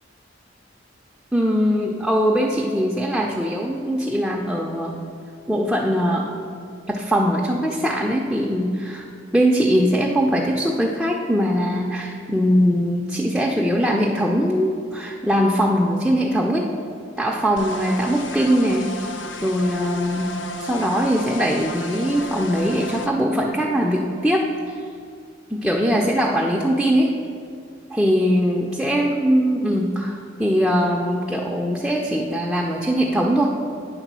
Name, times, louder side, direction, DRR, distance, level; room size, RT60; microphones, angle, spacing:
voice 1, 1.3-5.0 5.5-6.4 6.9-9.1 9.3-16.7 17.2-19.1 19.4-20.3 20.6-24.5 25.5-27.2 27.9-33.5, equal, ahead, -1 dB, 0.4 m, -21 dB
sound 1, 17.6-23.1, left 1 dB, 70° left, 0.5 m, -33 dB
9.0 x 3.6 x 6.1 m, 2.2 s
head